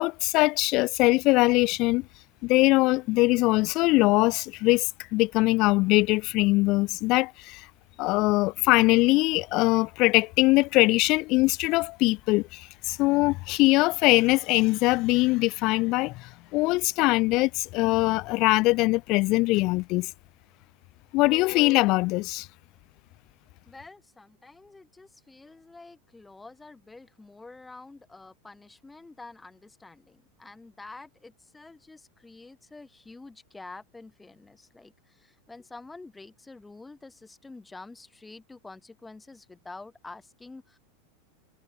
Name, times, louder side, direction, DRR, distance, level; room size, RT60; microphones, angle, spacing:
voice 1, 0.0-2.1 2.4-7.7 8.0-20.1 21.1-22.5, left 22 dB, 40° left, 0.4 m, -22 dB
voice 2, 23.7-40.8, left 3 dB, 5° left, 3.2 m, -47 dB
supercardioid pair, 165°, 0 cm